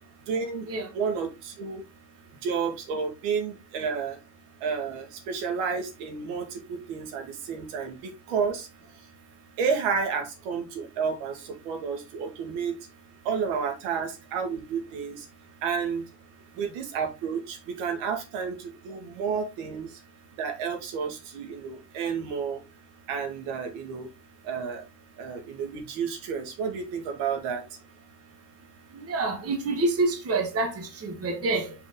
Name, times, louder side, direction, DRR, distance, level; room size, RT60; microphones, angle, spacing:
voice 1, 0.3-0.7 0.9-1.8 2.4-4.2 4.6-8.7 9.6-12.7 13.2-15.3 15.6-16.0 16.6-20.0 20.4-22.6 23.1-24.1 24.4-24.8 25.2-27.6, right 6 dB, 75° right, 2.2 m, -31 dB
voice 2, 28.9-31.7, right 2 dB, 30° right, 1.5 m, -27 dB
5.4 x 4.6 x 3.8 m
cardioid pair, 130°, 49 cm